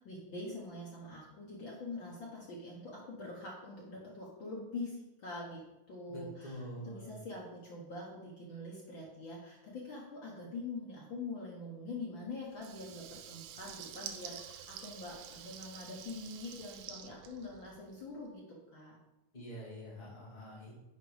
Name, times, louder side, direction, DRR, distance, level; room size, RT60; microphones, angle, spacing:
voice 1, 0.0-19.0, left 2 dB, 75° left, -4 dB, 1.1 m, -44 dB
voice 2, 6.1-7.1 19.3-20.7, equal, 15° left, -5 dB, 1.9 m, -46 dB
Water tap faucet / Liquid, 12.5-18.0, right 9 dB, 85° right, 2.3 m, -48 dB
6.6 x 5.2 x 4.9 m, 0.98 s
omnidirectional pair, 3.9 m